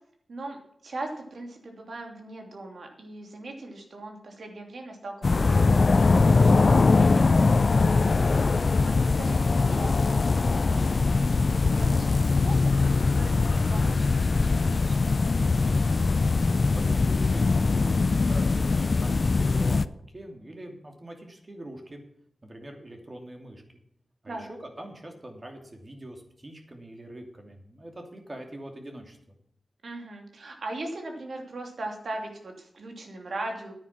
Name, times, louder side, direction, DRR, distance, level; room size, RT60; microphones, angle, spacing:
voice 1, 0.3-15.7 24.2-24.5 29.8-33.7, right 2 dB, 70° right, 3 dB, 2.8 m, -40 dB
sound 1, 5.2-19.9, left 3 dB, 50° left, 0.5 m, -22 dB
voice 2, 16.6-22.0 22.4-23.6 24.2-29.2, right 1 dB, 30° right, 3 dB, 2.6 m, -43 dB
10.0 x 9.5 x 6.0 m, 0.68 s
wide cardioid pair, 85°, 0 cm